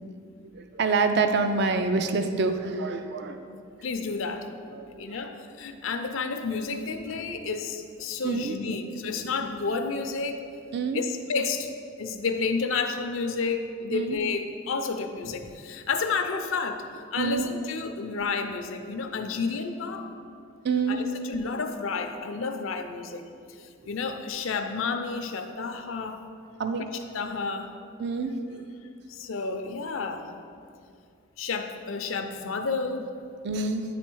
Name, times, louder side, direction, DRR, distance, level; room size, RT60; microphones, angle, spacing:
voice 1, 0.5-3.6 4.7-5.0 8.2-8.8 10.7-11.0 13.9-14.2 17.2-17.5 20.6-21.0 26.6-26.9 28.0-28.7 33.4-33.8, right 4 dB, 50° right, 7 dB, 0.4 m, -27 dB
voice 2, 3.8-4.5 5.0-10.4 10.9-11.7 12.0-20.1 20.9-23.2 23.6-26.2 26.9-27.7 29.1-30.3 31.4-33.1, left 4 dB, 70° left, 6 dB, 0.5 m, -31 dB
9.2 x 4.3 x 4.5 m, 2.4 s
head